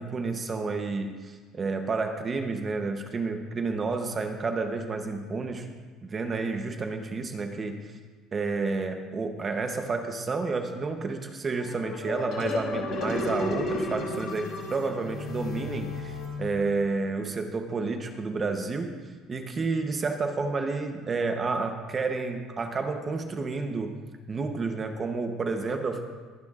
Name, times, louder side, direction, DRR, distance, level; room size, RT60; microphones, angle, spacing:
voice 1, 0.0-5.7 6.0-7.9 8.3-18.9 19.3-24.0 24.3-26.0, right 4 dB, 25° right, 5 dB, 0.8 m, -30 dB
sound 1, 11.6-17.0, left 3 dB, 50° left, 2.7 m, -33 dB
22.5 x 10.5 x 2.5 m, 1.5 s
cardioid pair, 160°, 0 cm